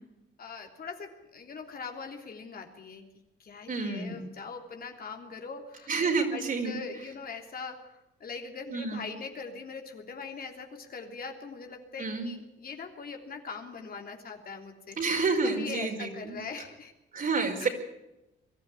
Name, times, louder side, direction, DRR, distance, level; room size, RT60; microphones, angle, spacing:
voice 1, 0.4-3.1 3.4-5.9 6.3-7.9 8.2-15.0 15.4-16.9 17.6-17.7, left 5 dB, 50° left, 3 dB, 3.3 m, -41 dB
voice 2, 3.7-4.2 5.9-6.8 8.7-9.0 12.0-12.3 15.0-16.4 17.1-17.7, right 4 dB, 45° right, 3 dB, 5.2 m, -29 dB
23.0 x 12.5 x 9.9 m, 0.93 s
cardioid pair, 90°, 20 cm